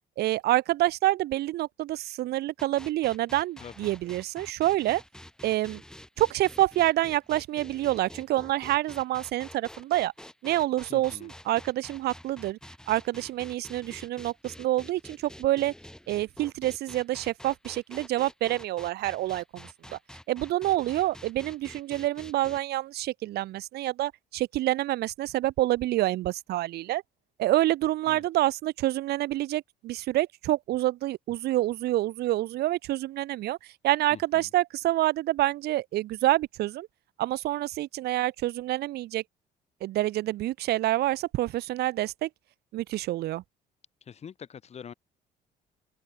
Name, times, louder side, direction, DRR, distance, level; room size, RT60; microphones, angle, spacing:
voice 1, 0.2-5.0 5.4-5.8 6.2-10.1 10.4-12.6 12.9-15.7 16.1-20.0 20.3-27.0 27.4-33.6 33.8-36.9 37.2-39.2 39.8-42.3 42.7-43.4, right 16 dB, 70° right, 1.0 m, -27 dB
sound 1, 2.6-22.6, left 1 dB, 5° left, 5.7 m, -48 dB
voice 2, 3.6-3.9 10.9-11.3 28.1-28.2 34.1-34.5 44.0-44.9, left 7 dB, 40° left, 1.5 m, -45 dB
open air
cardioid pair, 110°, 17 cm